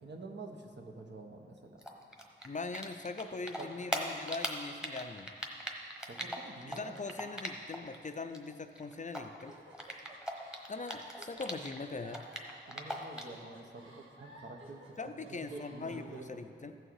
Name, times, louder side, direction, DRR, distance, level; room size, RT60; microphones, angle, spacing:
voice 1, 0.0-1.9 3.6-3.7 6.1-6.9 12.7-16.2, right 3 dB, 60° right, 2 dB, 1.1 m, -48 dB
Typing, 1.8-3.2 3.5-7.9 8.2-11.8 12.1-13.4, equal, 5° right, 1.2 m, -39 dB
voice 2, 2.4-5.3 6.7-9.6 10.7-12.2 15.0-16.8, left 3 dB, 35° left, 8 dB, 0.5 m, -41 dB
sound 1, 9.4-16.3, right 1 dB, 80° right, 1.7 m, -55 dB
15.0 x 6.4 x 4.7 m, 2.4 s
wide cardioid pair, 75°, 21 cm